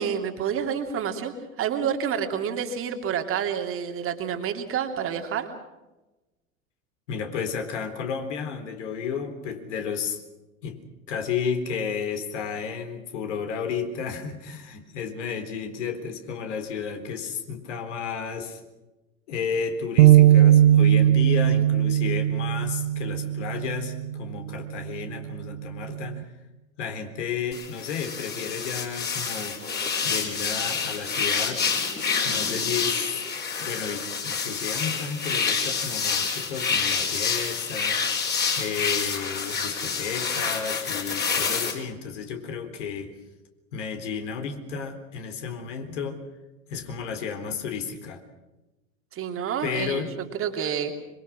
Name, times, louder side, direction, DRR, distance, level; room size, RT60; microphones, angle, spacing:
voice 1, 0.0-5.5 49.1-50.9, right 8 dB, 30° right, 5 dB, 2.9 m, -29 dB
voice 2, 7.1-10.2 10.6-10.8 11.1-18.6 19.3-26.3 26.8-29.6 30.0-31.6 32.2-33.2 33.6-38.0 38.6-43.1 43.7-46.2 46.7-48.2 49.6-50.1, left 6 dB, 55° left, 6 dB, 4.0 m, -32 dB
sound 1, 20.0-24.2 24.7-25.0 25.8-26.2, right 12 dB, 55° right, 1.0 m, -19 dB
sound 2, 27.5-41.7, left 5 dB, 25° left, 4.9 m, -28 dB
25.0 x 24.0 x 6.2 m, 1.1 s
figure-of-eight pair, 85°, 42 cm